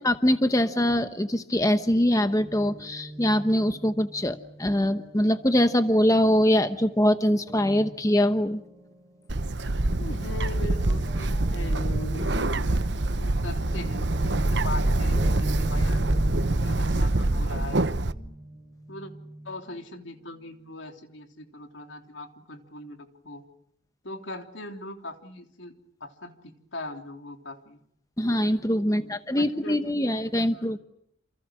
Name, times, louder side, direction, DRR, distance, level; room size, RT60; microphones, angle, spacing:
voice 1, 0.0-8.6 28.2-30.8, equal, 15° left, 9 dB, 1.0 m, -23 dB
Guitar, 2.3-10.0 10.3-20.7, right 1 dB, 10° right, 4.8 m, -42 dB
Bird, 9.3-18.1, right 2 dB, 65° right, 1.0 m, -25 dB
voice 2, 10.0-12.5 13.2-16.0 16.4-17.8 18.9-19.1 19.5-23.4 24.0-25.7 26.0-27.8 28.9-29.9 30.5-30.8, left 2 dB, 75° left, 5 dB, 3.4 m, -40 dB
28.5 x 28.5 x 6.3 m, 0.75 s
head